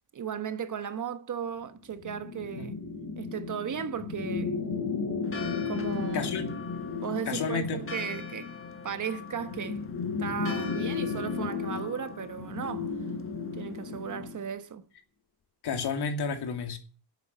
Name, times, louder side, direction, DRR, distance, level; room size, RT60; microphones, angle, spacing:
voice 1, 0.1-2.8 3.2-4.5 5.7-6.4 7.0-8.5 8.8-9.8 10.2-12.9 13.5-14.8, right 7 dB, 50° right, 1.3 m, -36 dB
sound 1, 2.0-14.4, left 5 dB, 60° left, 3.0 m, -34 dB
Church bell, 5.2-14.1, left 5 dB, 35° left, 1.4 m, -45 dB
voice 2, 6.1-6.6 7.3-7.8 15.6-16.8, left 5 dB, 75° left, 2.7 m, -31 dB
11.0 x 8.2 x 8.6 m
cardioid pair, 120°, 39 cm